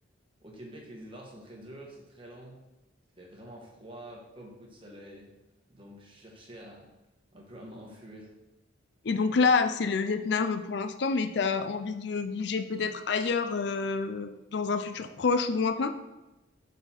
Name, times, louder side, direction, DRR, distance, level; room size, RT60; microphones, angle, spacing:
voice 1, 0.4-2.6 3.2-5.3 5.7-6.9 7.3-8.3, right 1 dB, 25° right, -1 dB, 1.3 m, -47 dB
voice 2, 9.0-15.9, left 4 dB, 60° left, 9 dB, 0.4 m, -28 dB
6.7 x 4.1 x 4.3 m, 0.99 s
head